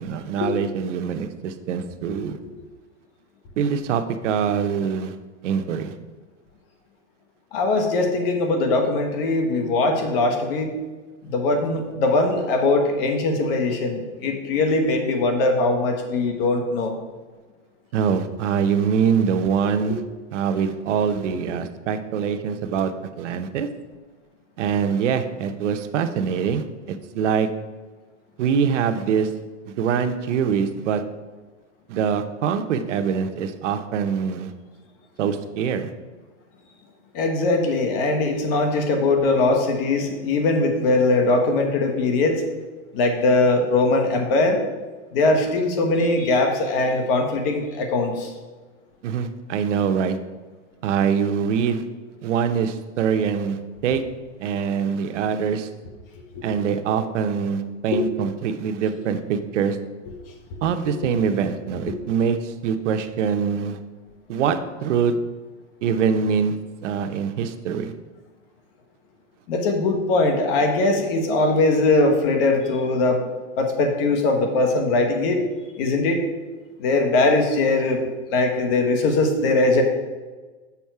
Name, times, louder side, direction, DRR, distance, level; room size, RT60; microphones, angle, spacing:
voice 1, 0.0-2.3 3.6-5.2 5.4-5.9 17.9-20.0 20.3-23.7 24.6-27.5 28.4-29.3 29.7-31.0 31.9-34.5 35.2-35.9 49.0-50.2 50.8-51.8 52.2-54.0 54.4-55.7 56.4-59.8 60.6-63.8 64.3-65.1 65.8-66.5 66.8-67.9, right 7 dB, 75° right, 8 dB, 0.8 m, -24 dB
voice 2, 7.5-10.7 11.2-16.9 37.1-42.4 42.9-44.6 45.1-48.3 56.3-56.4 57.9-58.0 69.5-73.2 73.6-75.4 75.8-76.2 76.8-78.0 78.3-79.8, left 2 dB, 50° left, 4 dB, 1.4 m, -21 dB
7.1 x 5.5 x 4.6 m, 1.3 s
supercardioid pair, 155°, 36 cm